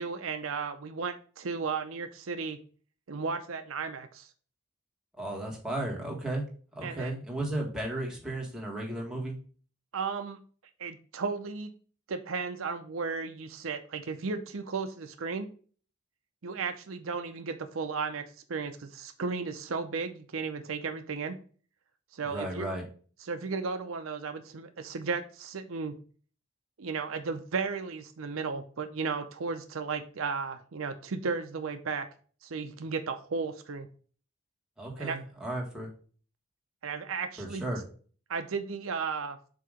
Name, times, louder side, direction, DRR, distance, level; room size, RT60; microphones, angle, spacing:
voice 1, 0.0-2.6 3.1-4.3 6.8-7.1 9.9-10.4 10.8-11.7 12.1-15.5 16.4-21.4 22.1-22.7 23.2-26.0 26.8-32.1 32.4-33.9 35.0-35.2 36.8-37.6 38.3-39.4, right 5 dB, 65° right, 8 dB, 0.6 m, -34 dB
voice 2, 5.2-6.5 6.7-9.4 22.2-22.8 34.8-35.9 37.4-37.8, right 1 dB, 5° right, -2 dB, 1.6 m, -34 dB
7.7 x 2.9 x 5.0 m, 0.42 s
head